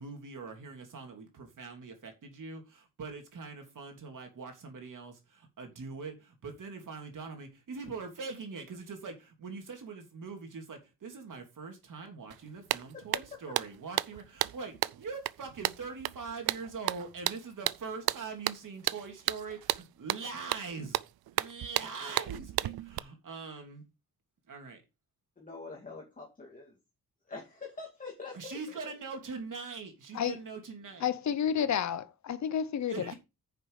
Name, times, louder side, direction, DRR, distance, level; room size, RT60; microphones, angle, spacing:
voice 1, 0.0-5.1 5.6-6.1 6.4-21.0 21.3-23.8 24.5-24.8 28.3-31.0 32.9-33.1, right 4 dB, 60° right, 3.2 m, -42 dB
sound 1, 12.3-12.4 12.7-23.0, right 14 dB, 85° right, 0.5 m, -33 dB
voice 2, 12.9-13.4 25.4-26.8 27.3-28.5, left 4 dB, 20° left, 2.5 m, -44 dB
voice 3, 31.0-33.1, left 8 dB, 50° left, 0.8 m, -30 dB
9.7 x 6.8 x 4.9 m
wide cardioid pair, 175°, 36 cm